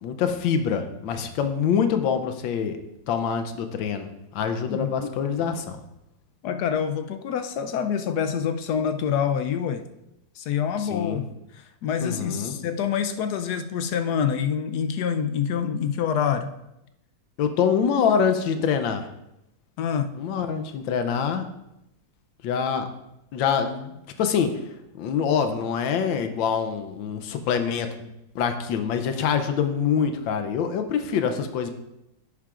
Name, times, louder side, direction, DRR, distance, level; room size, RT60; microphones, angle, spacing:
voice 1, 0.0-2.8 3.1-4.1 4.3-5.8 10.8-11.2 12.0-12.5 17.4-19.1 20.1-21.5 22.4-22.9 23.3-24.5 25.0-28.1 28.3-31.7, left 7 dB, 90° left, 8 dB, 1.4 m, -25 dB
voice 2, 4.7-5.1 6.4-9.8 10.4-11.2 11.5-16.5 19.8-20.1, left 7 dB, 70° left, 9 dB, 1.0 m, -26 dB
10.5 x 8.3 x 2.5 m, 0.87 s
omnidirectional pair, 2.0 m